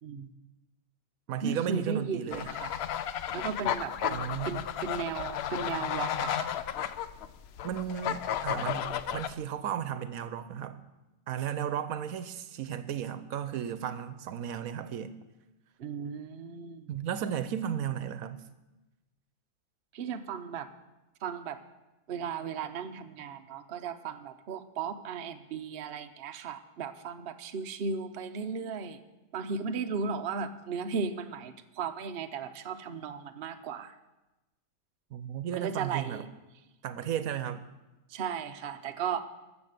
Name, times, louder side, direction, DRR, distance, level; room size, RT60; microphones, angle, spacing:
voice 1, 0.0-0.3 1.4-2.7 3.3-6.5 15.8-16.9 19.9-20.7 21.2-21.6 22.1-29.0 29.3-33.9 35.5-36.2 38.1-39.2, right 6 dB, 55° right, 7 dB, 0.8 m, -36 dB
voice 2, 1.3-2.5 4.1-4.5 7.6-10.8 11.3-15.1 16.9-18.4 35.1-36.2 36.8-37.6, right 9 dB, 75° right, 12 dB, 1.1 m, -34 dB
sound 1, 2.3-9.3, left 9 dB, 65° left, 0.7 m, -33 dB
14.0 x 7.2 x 6.6 m, 1.1 s
omnidirectional pair, 1.5 m